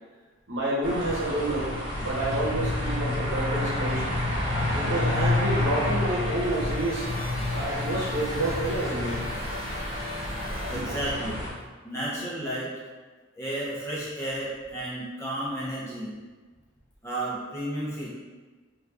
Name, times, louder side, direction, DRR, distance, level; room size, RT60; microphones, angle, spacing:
voice 1, 0.5-1.7 2.0-4.0 4.7-7.1 7.5-9.2, right 1 dB, 65° right, -6 dB, 0.9 m, -29 dB
sound 1, 0.8-11.5, left 1 dB, 20° right, 0.8 m, -29 dB
sound 2, 3.9-9.4, right 1 dB, 40° right, 0.4 m, -42 dB
sound 3, 5.9-11.5, left 2 dB, 75° left, 0.9 m, -42 dB
voice 2, 10.7-11.4 11.8-12.7 13.3-16.2 17.0-18.1, right 1 dB, 15° left, -7 dB, 0.7 m, -32 dB
3.0 x 2.5 x 3.4 m, 1.3 s
head